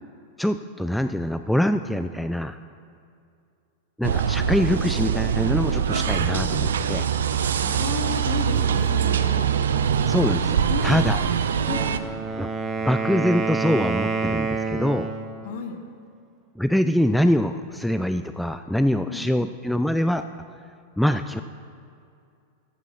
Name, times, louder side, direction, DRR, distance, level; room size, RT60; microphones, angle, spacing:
voice 1, 0.4-2.6 4.0-7.1 10.1-11.2 12.4-12.5 12.8-15.1 16.6-20.2 21.0-21.4, left 1 dB, ahead, 9 dB, 0.4 m, -24 dB
sound 1, 4.0-12.0, right 8 dB, 65° right, 0.5 m, -23 dB
voice 2, 7.6-9.5 10.7-11.1 11.7-12.0 15.4-15.8 19.1-19.5, left 6 dB, 55° left, 5 dB, 1.3 m, -33 dB
Wind instrument woodwind instrument, 11.5-15.3, right 4 dB, 20° right, 1.2 m, -28 dB
14.0 x 7.2 x 5.8 m, 2.4 s
figure-of-eight pair, 90°, 0 cm